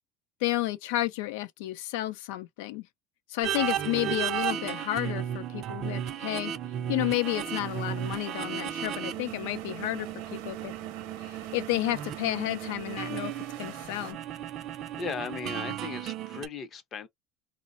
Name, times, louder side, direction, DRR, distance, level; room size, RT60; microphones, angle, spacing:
voice 1, 0.4-2.8 3.3-6.5 6.9-10.7 11.2-13.3 13.6-14.2, left 16 dB, 85° left, 0.4 m, -31 dB
sound 1, 3.4-16.5, right 10 dB, 40° right, 0.4 m, -35 dB
sound 2, 7.2-14.1, right 11 dB, 75° right, 0.7 m, -47 dB
voice 2, 15.0-17.1, left 5 dB, 30° left, 0.5 m, -37 dB
3.9 x 2.0 x 2.5 m
cardioid pair, 155°, 0 cm